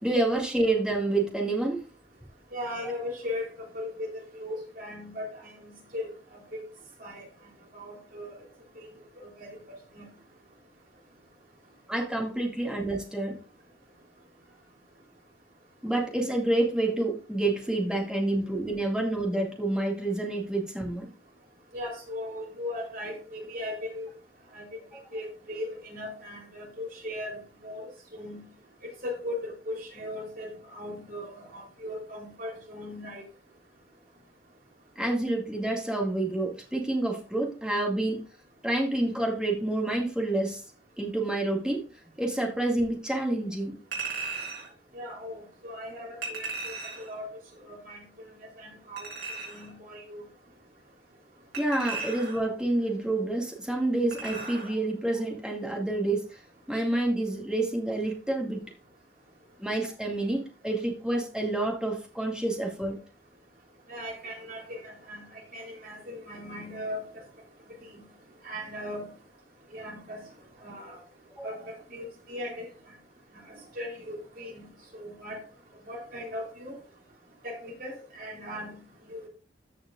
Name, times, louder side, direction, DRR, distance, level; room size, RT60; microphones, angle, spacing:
voice 1, 0.0-1.8 11.9-13.4 15.8-21.1 24.9-25.0 35.0-38.2 38.6-40.6 41.0-41.8 42.2-43.8 51.6-56.4 56.7-58.6 59.6-63.0 71.4-71.5, right 2 dB, 5° right, -1 dB, 2.2 m, -28 dB
voice 2, 2.5-3.5 3.7-6.1 6.5-6.6 7.0-7.2 7.7-8.4 8.8-8.9 10.0-10.1 21.7-24.1 24.5-24.7 25.1-28.4 29.0-33.2 44.9-47.3 47.7-48.1 48.6-49.1 49.5-50.2 63.9-65.2 65.5-67.0 67.8-68.0 68.4-69.1 69.7-70.2 70.6-71.0 71.4-72.7 73.5-74.7 75.0-75.4 75.9-76.7 77.4-78.8 79.1-79.3, left 1 dB, 50° right, -1 dB, 3.8 m, -38 dB
Chink clink, 43.9-44.7 46.2-47.1 49.0-49.7 51.5-52.5 54.1-54.7 55.1-55.2, right 4 dB, 80° right, 4.7 m, -36 dB
14.0 x 6.5 x 2.5 m, 0.35 s
head